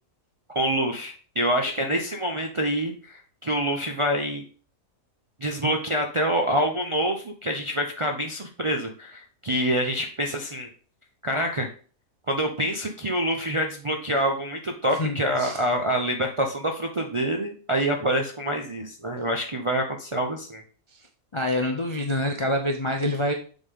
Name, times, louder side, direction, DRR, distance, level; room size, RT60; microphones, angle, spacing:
voice 1, 0.5-4.4 5.4-10.7 11.2-11.7 12.3-20.6, equal, 45° right, 2 dB, 0.4 m, -26 dB
voice 2, 15.0-15.6 20.9-21.0 21.3-23.3, left 1 dB, 45° left, 4 dB, 0.3 m, -26 dB
7.2 x 3.7 x 3.6 m, 0.40 s
omnidirectional pair, 1.5 m